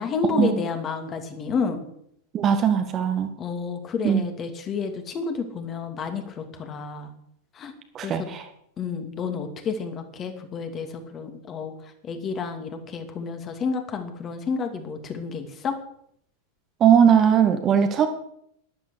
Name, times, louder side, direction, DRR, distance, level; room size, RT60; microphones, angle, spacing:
voice 1, 0.0-1.8 3.4-7.1 7.5-7.7 8.0-8.3 8.8-15.8, left 5 dB, 25° left, 6 dB, 2.4 m, -30 dB
voice 2, 2.3-3.3 4.0-4.2 7.9-8.4 16.8-18.1, right 8 dB, 30° right, 7 dB, 1.6 m, -19 dB
12.0 x 11.5 x 6.5 m, 0.72 s
figure-of-eight pair, 90°, 0 cm